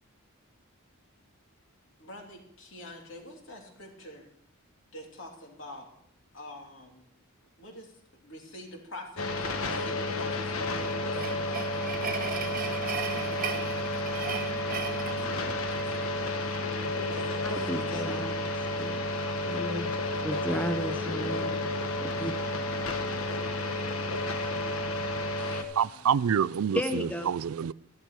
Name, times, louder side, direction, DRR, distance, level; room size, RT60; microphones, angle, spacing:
voice 1, 2.0-4.3 4.9-5.9 6.3-7.1 7.6-11.6 15.1-16.1 16.7-18.2 20.3-20.7 22.4-24.0 25.8-26.1, left 1 dB, 60° left, 3.0 m, -46 dB
sound 1, 9.2-25.6, left 2 dB, 80° left, 1.2 m, -31 dB
sound 2, 10.6-16.1, right 6 dB, 40° right, 0.9 m, -37 dB
voice 2, 17.4-19.2 19.5-19.9 20.2-22.4 23.8-24.0 25.5-25.6 26.7-27.3, equal, 5° left, 0.6 m, -34 dB
voice 3, 25.8-27.7, right 8 dB, 80° right, 0.4 m, -27 dB
12.5 x 12.0 x 4.7 m
head